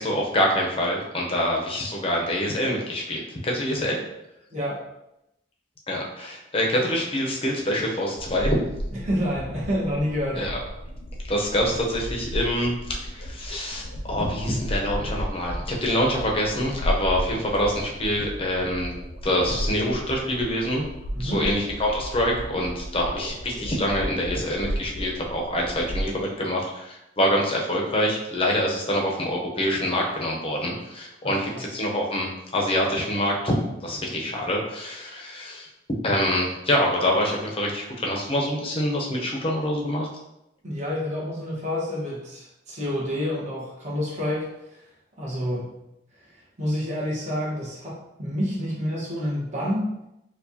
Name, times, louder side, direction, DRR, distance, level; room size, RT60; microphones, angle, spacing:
voice 1, 0.0-4.0 5.9-8.6 10.3-10.6 11.3-18.9 19.2-20.9 21.2-35.7 36.0-40.1, equal, 30° left, -1 dB, 0.7 m, -25 dB
voice 2, 4.5-4.8 8.9-10.5 21.1-21.4 31.2-31.7 40.6-44.8 45.2-45.7 46.6-49.9, equal, 40° right, -6 dB, 1.3 m, -28 dB
sound 1, 8.2-26.1, equal, 70° left, 0.5 m, -34 dB
4.5 x 2.4 x 2.8 m, 0.88 s
head